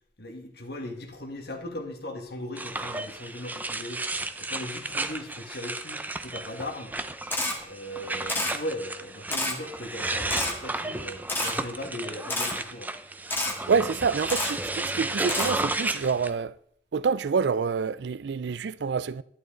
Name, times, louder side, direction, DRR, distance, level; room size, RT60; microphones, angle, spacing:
voice 1, 0.2-4.0 4.4-6.9 7.6-12.9 13.6-14.2, left 1 dB, 60° left, 1.9 m, -38 dB
sound 1, 2.6-16.3, right 2 dB, 10° right, 0.5 m, -33 dB
Camera, 7.3-7.5 8.3-8.5 9.3-9.5 10.3-10.5 11.3-11.5 12.3-12.5 13.3-13.5 14.3-14.5 15.3-15.5, left 2 dB, 10° left, 1.7 m, -28 dB
voice 2, 13.7-16.5 16.9-19.2, right 5 dB, 65° right, 0.4 m, -27 dB
11.5 x 11.0 x 3.9 m
head